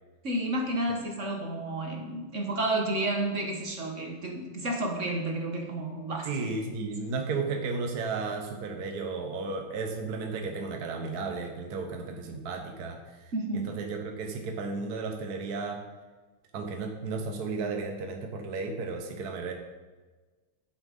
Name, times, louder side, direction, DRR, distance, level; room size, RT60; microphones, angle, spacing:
voice 1, 0.2-6.3 13.3-13.8, right 1 dB, 35° right, 1 dB, 1.6 m, -31 dB
voice 2, 6.2-15.8 16.5-19.5, right 4 dB, 55° right, 3 dB, 1.3 m, -34 dB
11.0 x 7.3 x 5.4 m, 1.3 s
omnidirectional pair, 2.4 m